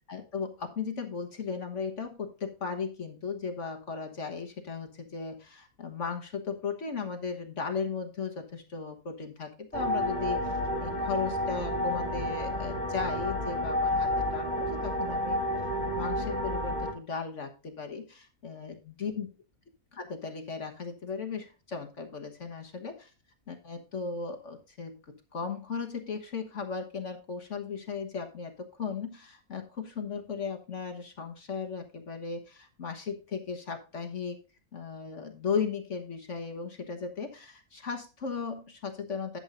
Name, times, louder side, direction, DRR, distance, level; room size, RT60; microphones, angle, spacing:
voice 1, 0.1-15.4 15.8-19.3 19.9-23.1 23.5-34.4 34.7-39.4, left 5 dB, 50° left, 5 dB, 1.6 m, -36 dB
sound 1, 9.7-16.9, left 1 dB, 25° left, 2.5 m, -30 dB
11.5 x 8.0 x 2.6 m, 0.33 s
omnidirectional pair, 1.6 m